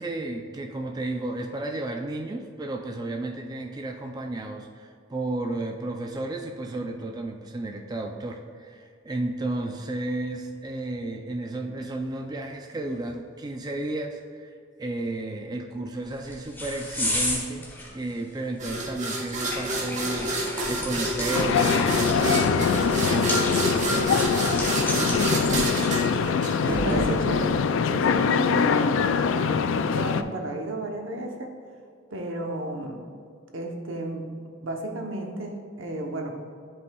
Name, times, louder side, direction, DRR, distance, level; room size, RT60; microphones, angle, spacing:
voice 1, 0.0-14.5 14.8-17.7 17.9-25.5 26.1-26.9, right 2 dB, 20° right, 3 dB, 0.4 m, -33 dB
sound 1, 16.0-27.5, left 1 dB, 10° left, 1.6 m, -34 dB
sound 2, 18.6-27.1, right 1 dB, 40° right, 1.1 m, -29 dB
sound 3, 21.3-30.2, left 6 dB, 75° left, 0.3 m, -23 dB
voice 2, 24.9-25.6 26.6-31.5 32.1-33.0 33.5-34.2 34.6-36.3, right 1 dB, 80° right, 2 dB, 0.9 m, -33 dB
10.5 x 5.4 x 2.3 m, 2.3 s
head